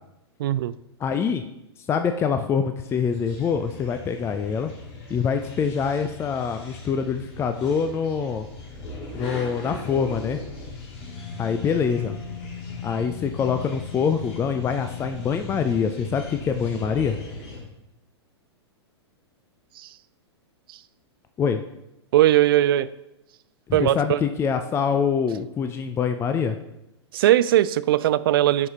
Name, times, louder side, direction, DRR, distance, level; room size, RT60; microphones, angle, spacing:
voice 1, 0.4-0.7 19.8-19.9 22.1-22.9 23.7-24.2 27.1-28.7, right 13 dB, 55° right, 17 dB, 0.4 m, -19 dB
voice 2, 1.0-1.4 1.9-4.7 5.1-8.5 9.1-10.4 11.4-12.2 12.8-17.2 21.4-21.6 23.7-26.6, left 6 dB, 15° left, 7 dB, 0.5 m, -25 dB
sound 1, 2.9-17.6, left 3 dB, 45° left, 3.6 m, -38 dB
11.0 x 5.0 x 4.2 m, 0.90 s
figure-of-eight pair, 105°, 14 cm